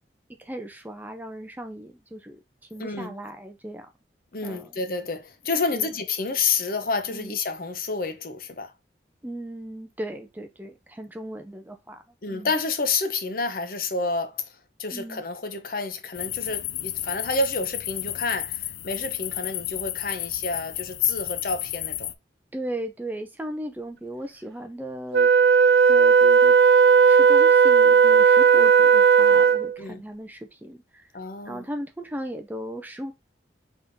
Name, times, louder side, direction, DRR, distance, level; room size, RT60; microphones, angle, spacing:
voice 1, 0.4-2.4 2.7-3.9 4.4-4.7 5.7-5.9 7.1-7.4 9.2-12.0 12.3-12.5 14.9-15.2 22.5-25.3 25.9-26.6 27.1-31.1 31.5-33.1, right 1 dB, 10° right, 0.4 m, -36 dB
voice 2, 2.8-3.1 4.3-8.7 12.2-14.5 14.8-22.1 29.8-30.0 31.1-31.6, left 4 dB, 55° left, 0.8 m, -29 dB
sound 1, 16.1-22.1, left 14 dB, 70° left, 0.4 m, -32 dB
Wind instrument woodwind instrument, 25.1-29.8, right 6 dB, 70° right, 0.4 m, -16 dB
5.2 x 3.6 x 2.6 m
head